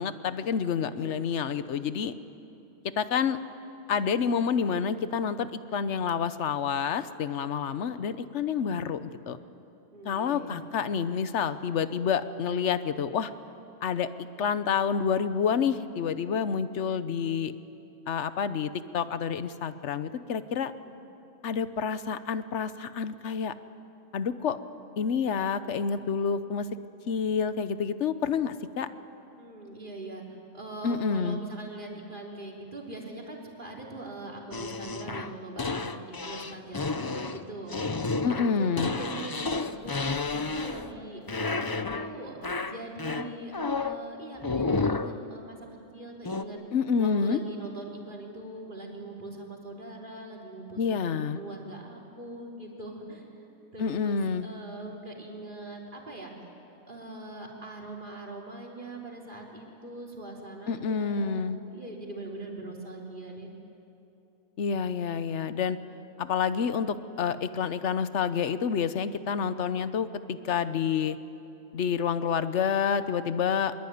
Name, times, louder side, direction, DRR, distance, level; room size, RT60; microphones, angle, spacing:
voice 1, 0.0-2.1 3.0-3.4 3.9-9.4 10.0-13.3 13.8-14.1 14.4-17.5 18.1-20.7 21.4-23.5 24.1-24.6 25.0-26.7 27.1-28.9 30.8-31.4 38.2-38.9 46.7-47.4 50.8-51.4 53.8-54.5 60.7-61.6 64.6-65.8 66.2-71.2 71.7-73.9, left 6 dB, 55° left, 13 dB, 1.1 m, -28 dB
voice 2, 0.9-1.4 9.9-10.6 29.4-37.8 38.2-39.9 40.3-45.6 45.9-46.6 47.0-56.5 56.9-63.5, right 2 dB, 35° right, -1 dB, 3.9 m, -42 dB
sound 1, 34.5-41.0 41.3-42.1 42.4-44.0 44.4-45.2 46.2-46.4, left 3 dB, 35° left, 0.3 m, -31 dB
24.5 x 22.0 x 9.4 m, 2.9 s
omnidirectional pair, 1.5 m